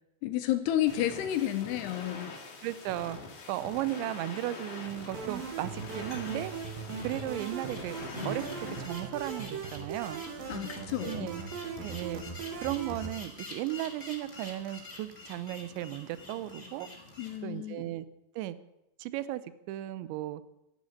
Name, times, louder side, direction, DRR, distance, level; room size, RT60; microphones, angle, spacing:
voice 1, 0.2-2.3 10.5-11.3 17.2-17.9, left 12 dB, 75° left, 9 dB, 2.6 m, -31 dB
sound 1, 0.9-8.9, left 4 dB, 45° left, 2.5 m, -45 dB
voice 2, 2.6-3.2 3.5-6.5 7.0-8.0 8.2-8.5 8.8-10.2 11.0-11.4 11.8-12.2 12.6-16.9 17.4-18.1 18.4-18.6 19.0-19.4 19.7-20.4, right 15 dB, 80° right, 15 dB, 2.9 m, -35 dB
sound 2, 5.1-13.1, right 5 dB, 55° right, 3.1 m, -39 dB
sound 3, 5.8-17.4, left 2 dB, 15° left, 1.7 m, -47 dB
11.5 x 10.5 x 9.5 m, 0.87 s
omnidirectional pair, 5.5 m